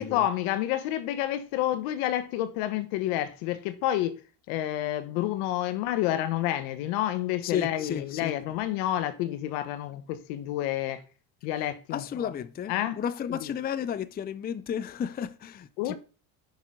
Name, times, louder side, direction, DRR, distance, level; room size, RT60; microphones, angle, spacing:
voice 1, 0.0-4.2 4.5-11.0 11.4-12.3 12.7-13.0 13.3-13.5 15.8-16.0, left 13 dB, 80° left, 1.4 m, -29 dB
voice 2, 7.4-8.3 11.9-16.0, left 8 dB, 20° left, 0.5 m, -33 dB
9.1 x 6.1 x 3.8 m
supercardioid pair, 110°, 45 cm